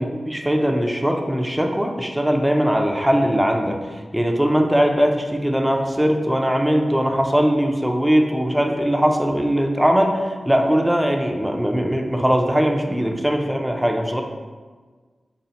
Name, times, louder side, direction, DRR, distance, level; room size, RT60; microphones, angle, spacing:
voice 1, 0.0-3.8 4.1-14.2, equal, 5° right, 3 dB, 0.4 m, -20 dB
4.1 x 2.0 x 3.9 m, 1.4 s
wide cardioid pair, 75°, 0 cm